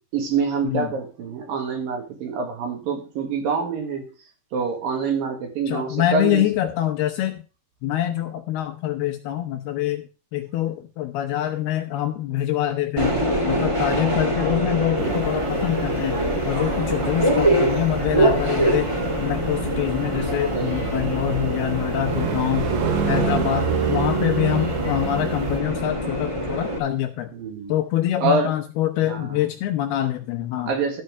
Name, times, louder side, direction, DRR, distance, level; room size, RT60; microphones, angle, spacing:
voice 1, 0.1-4.1 4.5-6.4 20.5-21.0 22.7-22.8 27.3-27.7 28.2-28.5 29.0-29.4 30.7-31.0, right 4 dB, 60° right, 4 dB, 3.3 m, -26 dB
voice 2, 5.7-7.4 7.8-10.0 10.3-13.1 13.4-16.2 16.4-18.9 19.2-22.7 23.1-27.3 27.7-30.7, left 12 dB, 75° left, 7 dB, 2.5 m, -25 dB
Subway metro underground, 13.0-26.8, right 1 dB, 20° right, 0.8 m, -24 dB
sound 1, 15.0-25.6, right 7 dB, 80° right, 3.7 m, -29 dB
sound 2, 16.5-17.7 18.4-19.0, right 2 dB, 35° right, 2.2 m, -43 dB
13.0 x 5.6 x 6.4 m, 0.33 s
omnidirectional pair, 5.2 m